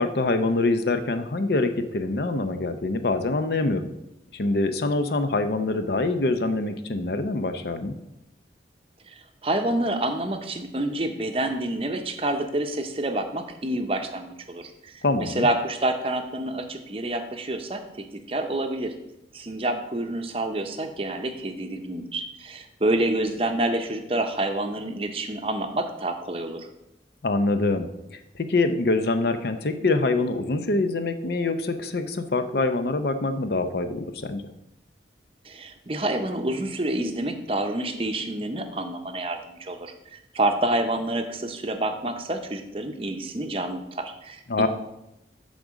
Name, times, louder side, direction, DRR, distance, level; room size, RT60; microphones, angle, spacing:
voice 1, 0.0-3.9 4.3-7.9 15.0-15.5 27.2-27.9 28.3-34.4 44.5-44.7, left 2 dB, 65° left, 8 dB, 0.6 m, -25 dB
voice 2, 9.1-17.8 18.1-18.9 19.3-26.7 35.4-44.7, right 1 dB, 30° right, 6 dB, 0.6 m, -28 dB
8.4 x 3.9 x 6.2 m, 0.89 s
head